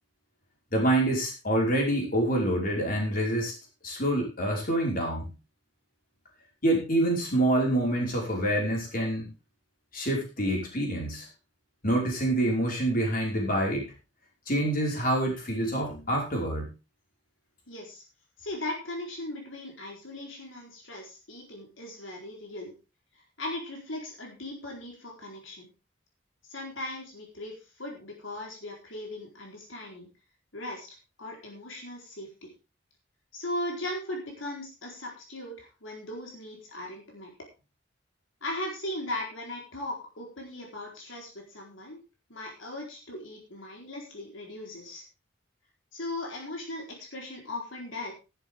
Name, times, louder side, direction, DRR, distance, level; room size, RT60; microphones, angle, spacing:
voice 1, 0.7-3.5 3.8-5.3 6.6-9.3 9.9-11.3 11.8-13.9 14.5-16.7, right 1 dB, 45° left, 0 dB, 5.3 m, -26 dB
voice 2, 17.7-18.0 18.4-22.7 23.4-25.7 26.5-30.1 30.5-32.5 33.3-37.3 38.4-42.0 42.3-45.0 45.9-48.1, left 1 dB, 85° left, 0 dB, 4.4 m, -38 dB
14.0 x 12.0 x 3.7 m, 0.30 s
head